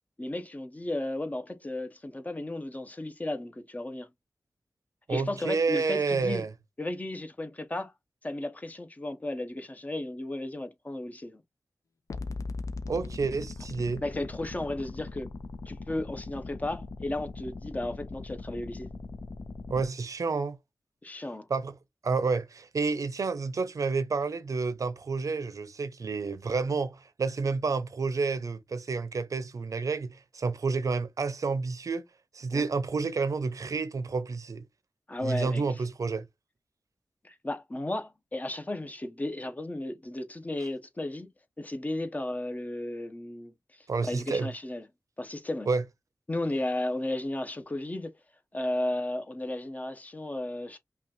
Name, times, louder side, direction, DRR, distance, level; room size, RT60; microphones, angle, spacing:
voice 1, 0.2-4.1 5.1-6.5 6.8-7.9 8.2-11.4 14.0-15.3 15.7-18.9 21.0-21.5 32.5-32.6 35.1-35.6 37.2-41.3 41.6-43.5 44.0-44.8 45.2-45.7 46.3-48.1 48.5-50.8, left 1 dB, 25° left, 0.7 m, -34 dB
voice 2, 5.1-6.5 12.9-14.0 19.7-20.6 21.5-21.7 22.0-32.0 32.3-34.6 35.2-36.3 43.9-44.5 45.7-45.8, right 4 dB, 70° right, 0.6 m, -29 dB
sound 1, 12.1-19.8, left 3 dB, 75° left, 0.6 m, -40 dB
5.4 x 2.3 x 2.8 m
wide cardioid pair, 75°, 6 cm